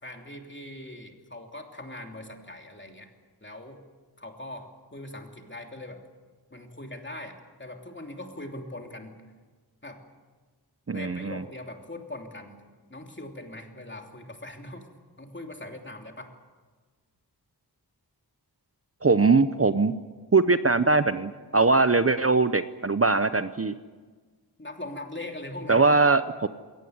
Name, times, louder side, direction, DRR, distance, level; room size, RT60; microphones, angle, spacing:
voice 1, 0.0-3.1 3.4-3.8 4.2-6.1 6.5-9.2 9.8-10.0 10.9-12.6 12.9-14.9 15.2-16.3 24.6-25.9, left 1 dB, 30° left, 3 dB, 3.0 m, -41 dB
voice 2, 10.9-11.4 19.0-19.9 20.3-23.7 25.7-26.5, right 3 dB, 35° right, 12 dB, 0.8 m, -21 dB
22.0 x 18.5 x 9.5 m, 1.4 s
wide cardioid pair, 60°, 39 cm